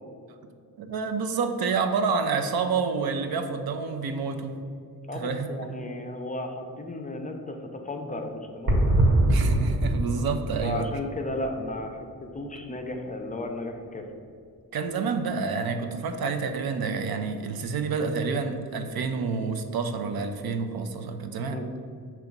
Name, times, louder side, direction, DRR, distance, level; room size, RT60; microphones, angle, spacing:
voice 1, 0.8-4.6 5.1-5.5 9.3-10.9 14.7-21.6, right 5 dB, 80° right, 7 dB, 0.6 m, -28 dB
voice 2, 5.1-9.1 10.6-14.0 21.5-21.6, left 2 dB, 20° left, 4 dB, 0.4 m, -34 dB
sound 1, 8.7-12.4 12.7-12.8 13.0-13.1, right 1 dB, 65° right, 1.4 m, -24 dB
5.8 x 3.1 x 5.2 m, 2.3 s
wide cardioid pair, 145°, 36 cm